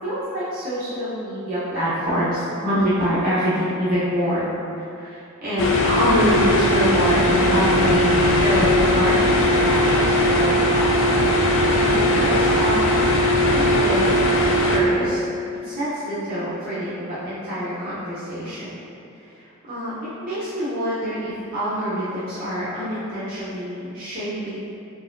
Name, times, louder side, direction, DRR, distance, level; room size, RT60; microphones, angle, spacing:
voice 1, 0.0-4.5 4.9-10.8 11.3-12.7 13.5-15.2 15.6-18.7 19.2-19.9 20.2-24.6, equal, 40° right, -12 dB, 0.7 m, -26 dB
sound 1, 5.6-14.8, left 1 dB, 60° left, 0.4 m, -19 dB
sound 2, 6.4-11.7 12.0-14.2, right 1 dB, 35° left, 1.2 m, -31 dB
3.8 x 3.7 x 2.5 m, 2.7 s
head